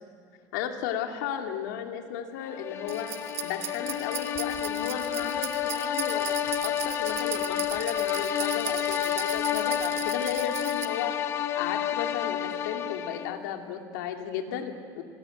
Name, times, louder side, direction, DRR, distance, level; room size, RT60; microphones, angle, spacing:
voice 1, 0.5-3.1 3.4-11.1 11.5-15.0, left 8 dB, 90° left, 3 dB, 2.7 m, -34 dB
sound 1, 2.5-13.5, left 10 dB, 30° left, 0.7 m, -30 dB
sound 2, 2.9-10.8, right 9 dB, 30° right, 1.2 m, -37 dB
25.5 x 20.0 x 9.2 m, 2.2 s
cardioid pair, 180°, 9 cm